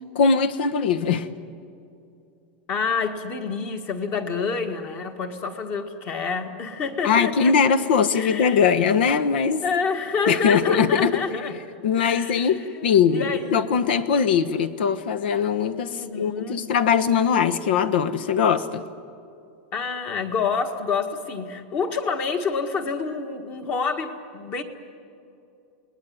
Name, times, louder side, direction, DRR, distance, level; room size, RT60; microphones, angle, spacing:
voice 1, 0.1-1.3 7.0-9.6 10.3-11.2 11.8-18.8, left 6 dB, 70° left, 12 dB, 1.3 m, -21 dB
voice 2, 2.7-7.6 8.1-8.6 9.6-11.6 12.0-13.7 15.9-16.6 19.7-24.6, left 5 dB, 30° left, 6 dB, 1.7 m, -28 dB
29.5 x 20.0 x 9.5 m, 2.6 s
supercardioid pair, 170°, 6 cm